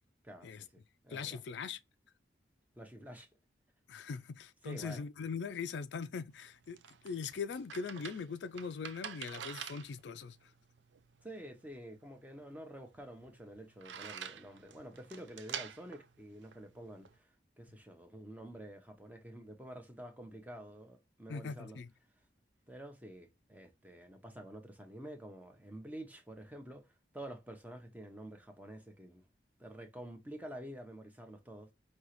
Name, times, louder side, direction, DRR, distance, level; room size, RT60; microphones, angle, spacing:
voice 1, 0.2-1.4 2.8-3.3 4.6-5.0 11.2-21.8 22.7-29.2 29.6-31.7, right 1 dB, 10° right, 0.7 m, -49 dB
voice 2, 1.1-1.8 3.9-6.8 7.0-10.4 21.3-21.9, left 5 dB, 70° left, 0.4 m, -41 dB
sound 1, 6.3-17.2, right 8 dB, 80° right, 0.5 m, -48 dB
5.3 x 2.9 x 3.0 m
head